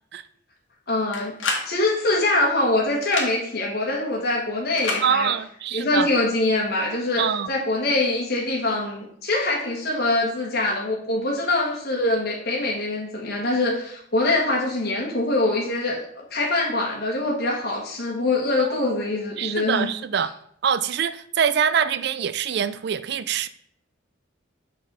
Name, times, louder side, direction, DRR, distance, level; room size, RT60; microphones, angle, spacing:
voice 1, 0.9-1.3 1.6-5.3 5.7-19.9, left 2 dB, 55° left, -3 dB, 1.3 m, -24 dB
sound 1, 1.1-1.7 3.0-3.3 4.8-5.0, left 3 dB, 85° left, 1.6 m, -27 dB
voice 2, 5.0-6.1 7.2-7.5 18.6-18.9 19.4-20.3 20.6-23.5, right 7 dB, 60° right, 14 dB, 0.4 m, -24 dB
6.4 x 4.0 x 5.4 m, 0.66 s
head